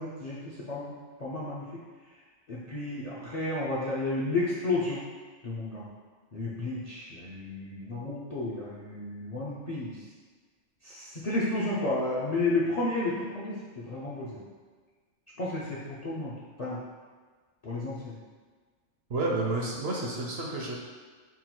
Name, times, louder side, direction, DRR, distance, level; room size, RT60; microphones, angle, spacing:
voice 1, 0.0-1.7 2.5-5.0 5.4-5.9 6.3-10.0 10.8-14.4 15.4-16.3 16.6-16.8 17.6-18.2, left 2 dB, 55° left, -7 dB, 0.4 m, -32 dB
voice 2, 19.1-20.8, right 2 dB, 60° right, -2 dB, 0.7 m, -30 dB
3.7 x 2.2 x 4.4 m, 1.5 s
omnidirectional pair, 1.3 m